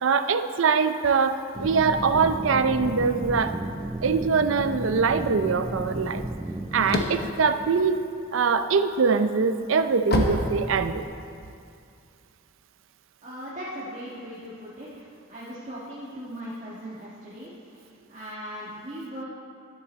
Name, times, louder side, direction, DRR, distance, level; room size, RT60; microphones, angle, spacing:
voice 1, 0.0-3.5 4.0-6.2 6.7-8.0 8.3-11.0, right 5 dB, 70° right, 10 dB, 0.5 m, -23 dB
sound 1, 1.5-7.0, right 2 dB, 15° right, 0.3 m, -33 dB
sound 2, 6.7-8.6 9.1-11.3, left 1 dB, 50° left, 1.0 m, -27 dB
voice 2, 13.2-19.2, equal, 35° right, -8 dB, 1.5 m, -39 dB
11.5 x 10.5 x 4.2 m, 2.4 s
head